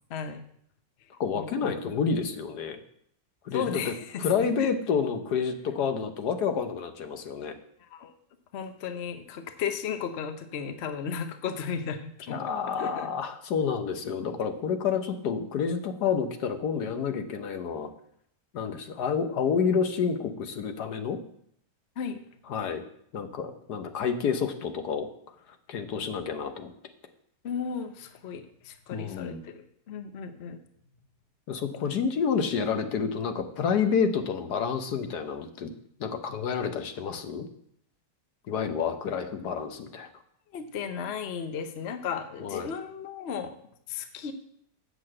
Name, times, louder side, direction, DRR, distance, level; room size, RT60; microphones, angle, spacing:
voice 1, 0.1-0.4 1.3-1.8 3.5-4.3 4.6-4.7 7.8-8.1 8.5-12.5 12.8-13.1 22.0-22.2 27.4-30.6 40.5-43.5 43.9-44.3, left 7 dB, 50° left, 8 dB, 0.8 m, -35 dB
voice 2, 1.2-2.8 3.4-7.5 12.3-17.9 18.5-21.2 22.5-22.8 23.1-25.1 25.7-26.7 28.9-29.4 31.5-35.7 36.0-37.5 38.5-40.1 42.4-42.7, left 6 dB, 70° left, 7 dB, 1.4 m, -29 dB
7.7 x 6.1 x 7.5 m, 0.70 s
omnidirectional pair, 1.9 m